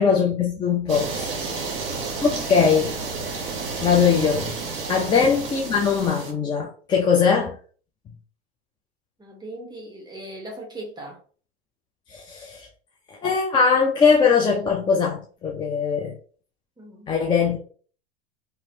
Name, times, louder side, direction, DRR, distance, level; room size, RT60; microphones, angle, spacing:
voice 1, 0.0-1.4 2.2-3.0 3.8-4.5 4.9-7.6 12.1-12.7 13.1-16.2 17.1-17.6, left 6 dB, 15° left, 0.4 m, -21 dB
sound 1, 0.9-6.3, right 4 dB, 40° right, 1.2 m, -31 dB
voice 2, 1.4-1.8 4.9-5.1 9.2-11.2 16.8-17.1, right 1 dB, 15° right, 0.9 m, -39 dB
2.9 x 2.5 x 2.7 m
hypercardioid pair, 100°, 31 cm